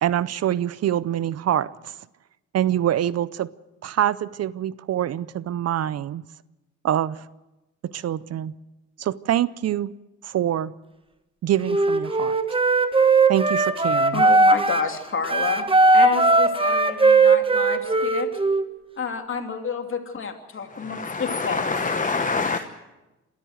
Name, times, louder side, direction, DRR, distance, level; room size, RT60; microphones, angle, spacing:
voice 1, 0.0-1.9 2.5-3.5 3.8-6.2 6.8-7.3 7.8-8.5 9.0-9.9 10.2-10.7 11.4-12.4 13.3-14.2, right 11 dB, 55° right, 19 dB, 0.6 m, -25 dB
Wind instrument woodwind instrument, 11.6-14.9 15.2-18.7, right 3 dB, 15° right, 1.3 m, -18 dB
voice 2, 14.1-15.7 15.9-18.3 19.0-21.7, left 5 dB, 45° left, 5 dB, 2.9 m, -29 dB
voice 3, 20.6-22.6, left 4 dB, 25° left, 7 dB, 1.1 m, -26 dB
26.0 x 13.5 x 8.0 m, 1.0 s
cardioid pair, 90°, 30 cm